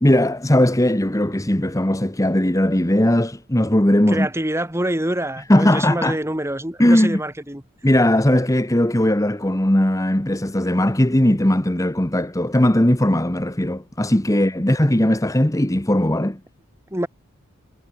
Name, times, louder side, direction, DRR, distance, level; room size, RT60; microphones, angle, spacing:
voice 1, 0.0-4.3 5.5-6.2 6.8-7.2 7.8-16.4, left 1 dB, 15° left, 1.1 m, -18 dB
voice 2, 4.1-7.6 16.9-17.1, right 1 dB, 10° right, 2.2 m, -25 dB
head